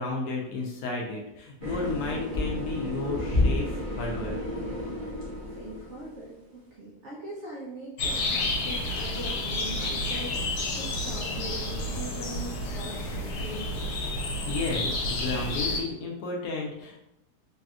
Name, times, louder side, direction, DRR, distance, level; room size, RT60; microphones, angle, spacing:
voice 1, 0.0-4.4 14.5-17.0, left 3 dB, 70° left, -1 dB, 1.0 m, -33 dB
sound 1, 1.6-6.2, left 1 dB, 30° right, 0.7 m, -30 dB
voice 2, 5.5-13.9, right 2 dB, 65° right, -4 dB, 0.7 m, -41 dB
sound 2, 8.0-15.8, left 2 dB, 85° left, 1.3 m, -30 dB
3.3 x 2.7 x 2.3 m, 0.85 s
omnidirectional pair, 1.8 m